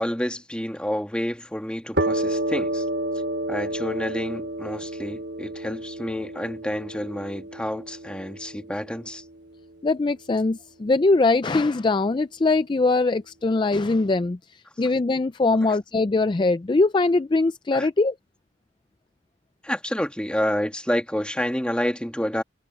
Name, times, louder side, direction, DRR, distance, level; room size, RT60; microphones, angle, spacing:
voice 1, 0.0-2.8 3.5-9.2 14.9-15.0 15.6-15.7 17.7-17.9 19.6-22.4, equal, 5° left, 1.9 m, -29 dB
sound 1, 1.9-9.4, right 1 dB, 65° right, 5.0 m, -30 dB
voice 2, 9.8-14.4 14.8-18.1, left 3 dB, 25° left, 0.4 m, -21 dB
head